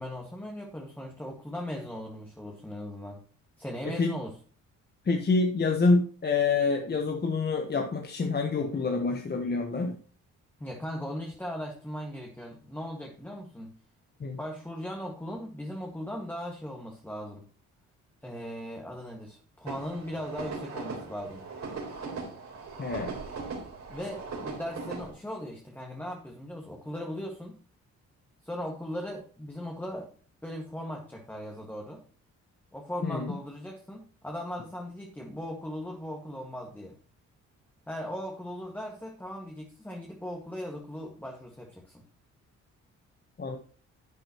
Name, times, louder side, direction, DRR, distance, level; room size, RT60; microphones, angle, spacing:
voice 1, 0.0-3.2 3.6-4.3 10.6-13.8 14.4-17.4 18.2-21.4 23.9-27.6 28.4-30.1 30.4-32.0 32.7-37.0 37.9-42.0, equal, 5° left, 0 dB, 1.8 m, -38 dB
voice 2, 5.0-10.0 14.2-14.4 22.8-23.2 33.0-33.4 43.4-43.6, left 3 dB, 35° left, 4 dB, 1.2 m, -27 dB
sound 1, 19.7-25.1, right 4 dB, 65° right, 3.7 m, -39 dB
11.0 x 8.8 x 3.0 m, 0.41 s
cardioid pair, 90°, 30 cm